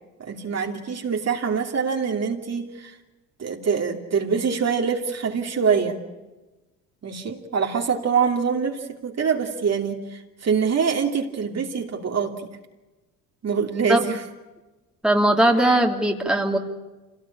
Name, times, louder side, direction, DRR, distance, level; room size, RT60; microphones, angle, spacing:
voice 1, 0.2-2.9 3.4-6.0 7.0-12.5 13.4-14.2, right 6 dB, 40° right, 2 dB, 2.9 m, -24 dB
voice 2, 15.0-16.6, right 1 dB, ahead, 2 dB, 2.9 m, -19 dB
26.0 x 18.0 x 8.7 m, 1.1 s
supercardioid pair, 70°, 38 cm